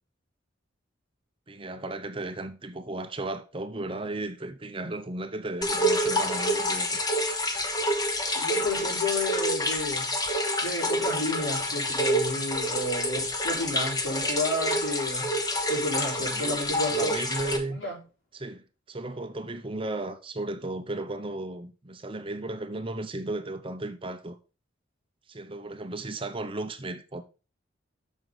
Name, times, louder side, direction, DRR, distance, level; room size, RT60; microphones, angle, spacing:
voice 1, 1.5-7.0 16.2-16.6 16.9-17.8 18.3-24.4 25.3-27.2, right 2 dB, 25° right, 0.7 m, -35 dB
sound 1, 5.6-17.6, equal, 20° left, 1.1 m, -27 dB
voice 2, 8.3-10.1 10.6-15.3 15.7-17.1 17.5-18.0, left 1 dB, 80° left, 4.9 m, -31 dB
8.0 x 6.4 x 3.9 m
head